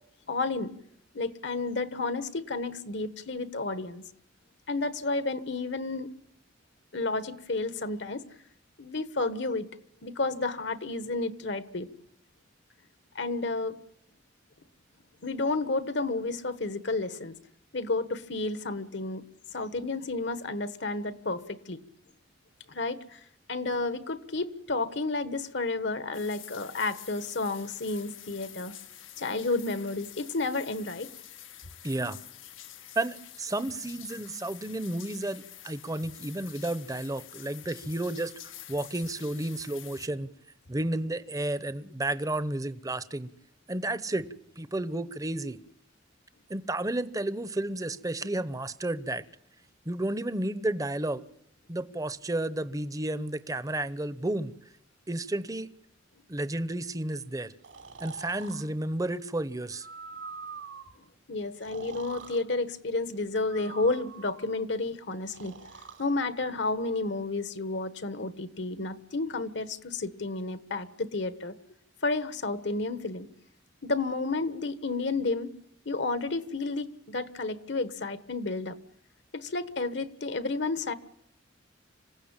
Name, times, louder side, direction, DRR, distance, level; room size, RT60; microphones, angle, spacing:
voice 1, 0.3-0.7 1.1-4.0 4.7-6.1 6.9-8.2 8.8-9.7 10.0-11.9 13.1-13.8 15.2-17.4 17.7-19.2 19.5-21.8 22.7-23.2 23.5-28.7 29.2-31.1 61.3-65.6 66.0-71.5 72.0-73.3 73.8-75.5 75.8-78.8 79.3-80.9, left 3 dB, 65° left, 1.3 m, -31 dB
sound 1, 26.1-40.1, left 12 dB, 85° left, 1.3 m, -48 dB
voice 2, 31.8-32.2 33.0-40.3 40.7-43.3 43.7-44.3 44.6-45.6 46.5-49.2 49.9-51.2 51.7-54.5 55.1-55.7 56.3-57.5 58.0-59.9, right 1 dB, 20° right, 0.8 m, -32 dB
Breathing, 57.6-58.7 59.7-61.0 61.5-62.4 63.4-64.6 65.3-66.1, right 5 dB, 80° right, 3.0 m, -44 dB
26.5 x 16.0 x 8.9 m
head